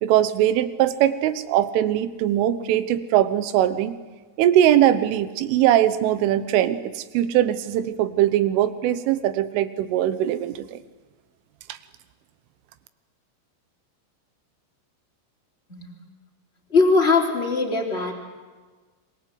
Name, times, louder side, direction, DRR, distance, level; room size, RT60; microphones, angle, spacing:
voice 1, 0.0-4.0 4.4-10.8 11.7-11.8, right 12 dB, 80° right, 12 dB, 3.5 m, -21 dB
voice 2, 16.7-18.1, left 3 dB, 15° left, 1 dB, 2.9 m, -20 dB
26.5 x 23.5 x 7.9 m, 1.4 s
omnidirectional pair, 5.9 m